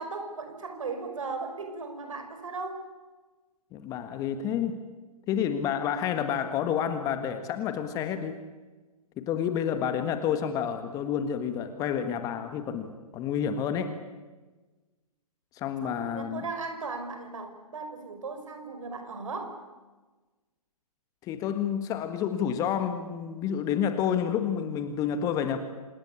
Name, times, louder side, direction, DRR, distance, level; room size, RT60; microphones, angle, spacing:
voice 1, 0.0-2.9 15.8-19.6, right 4 dB, 60° right, 7 dB, 5.7 m, -37 dB
voice 2, 3.7-4.8 5.3-8.4 9.2-13.9 15.5-16.4 21.2-25.6, left 8 dB, 20° left, 9 dB, 1.6 m, -29 dB
27.0 x 19.5 x 8.5 m, 1.2 s
figure-of-eight pair, 130°, 19 cm